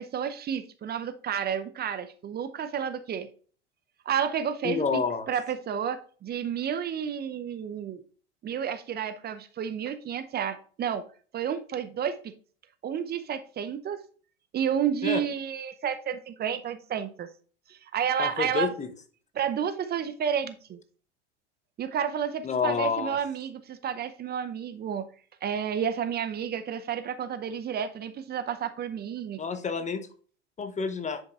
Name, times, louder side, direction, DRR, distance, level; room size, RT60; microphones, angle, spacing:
voice 1, 0.0-3.3 4.1-5.0 5.3-8.0 8.4-11.0 11.3-12.3 12.8-14.0 14.5-17.3 17.7-18.7 19.3-20.8 21.8-25.1 25.4-29.4, right 8 dB, 30° right, 10 dB, 0.7 m, -31 dB
voice 2, 4.6-5.3 15.0-15.2 18.2-18.9 22.4-23.2 29.4-30.1 30.6-31.2, left 5 dB, 20° left, 9 dB, 0.9 m, -28 dB
10.0 x 5.3 x 2.4 m, 0.42 s
hypercardioid pair, 80°, 34 cm